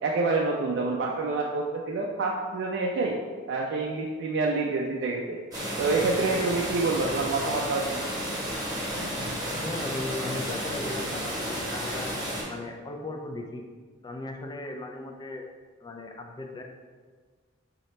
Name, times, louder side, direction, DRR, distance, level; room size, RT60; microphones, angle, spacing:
voice 1, 0.0-3.2 3.5-5.4 5.8-8.0, right 3 dB, 60° right, -1 dB, 0.3 m, -27 dB
sound 1, 5.5-12.4, equal, 20° right, 1.1 m, -32 dB
voice 2, 9.5-12.1 12.5-13.6 14.0-15.4 15.8-16.6, left 2 dB, 20° left, 2 dB, 0.3 m, -37 dB
3.2 x 2.7 x 4.1 m, 1.5 s
head